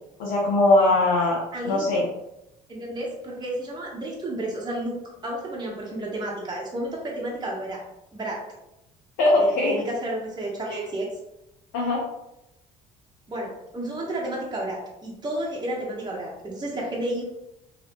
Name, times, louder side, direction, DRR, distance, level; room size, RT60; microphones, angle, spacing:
voice 1, 0.2-2.1 9.2-9.8 10.7-10.8 11.7-12.0, left 2 dB, 80° left, -4 dB, 0.8 m, -21 dB
voice 2, 1.5-1.9 2.7-5.0 5.2-7.8 8.1-8.4 9.4-11.1 13.3-17.2, right 1 dB, 25° right, -3 dB, 1.2 m, -31 dB
2.8 x 2.8 x 3.4 m, 0.87 s
hypercardioid pair, 65°, 18 cm